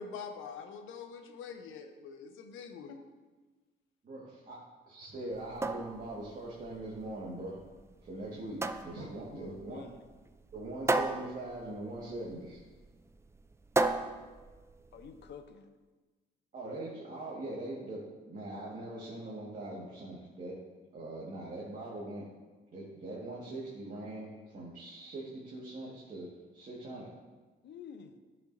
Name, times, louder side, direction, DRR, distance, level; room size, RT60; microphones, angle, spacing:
voice 1, 0.0-3.0, left 5 dB, 90° left, 6 dB, 0.8 m, -44 dB
voice 2, 4.0-4.6 4.8-7.6 8.0-9.9 10.5-12.6 16.5-20.5 20.9-22.3 22.7-27.1, right 2 dB, 40° right, -6 dB, 1.7 m, -42 dB
sound 1, 5.3-15.3, right 2 dB, 15° right, 0.3 m, -36 dB
voice 3, 9.3-10.0 14.9-15.7 27.6-28.1, left 6 dB, 60° left, 9 dB, 0.7 m, -49 dB
10.5 x 5.6 x 2.7 m, 1.3 s
cardioid pair, 90°, 20 cm